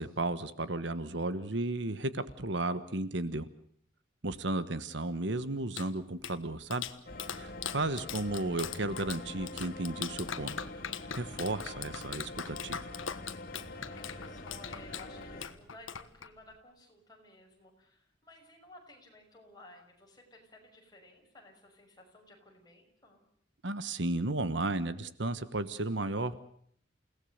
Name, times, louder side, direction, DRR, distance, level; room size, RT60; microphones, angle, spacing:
voice 1, 0.0-3.5 4.2-6.8 7.3-10.5 11.1-12.8 23.6-26.4, right 2 dB, 65° right, 13 dB, 1.3 m, -34 dB
Clapping, 5.4-16.6, left 8 dB, 90° left, 1.4 m, -42 dB
sound 1, 7.1-15.5, left 2 dB, 45° left, 3.2 m, -45 dB
voice 2, 7.7-8.1 13.5-23.2, left 2 dB, 20° left, 1 dB, 6.4 m, -56 dB
29.5 x 18.0 x 6.6 m, 0.65 s
head